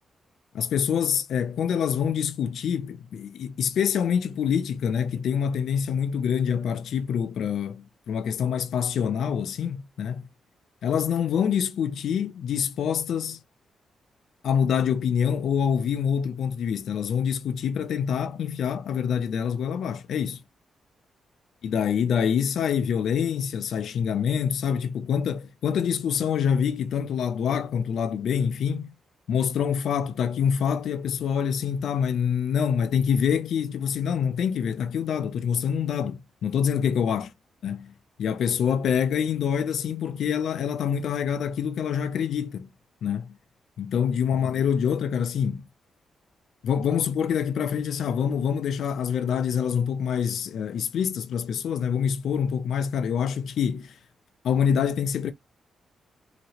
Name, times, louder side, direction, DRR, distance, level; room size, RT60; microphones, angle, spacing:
voice 1, 0.5-10.2 10.8-13.4 14.4-20.4 21.6-28.9 29.3-37.3 37.6-37.9 38.2-42.7 43.0-43.3 43.8-45.6 46.6-54.0 54.4-55.3, left 7 dB, 70° left, 0.4 m, -26 dB
2.9 x 2.7 x 2.8 m
wide cardioid pair, 165°, 0 cm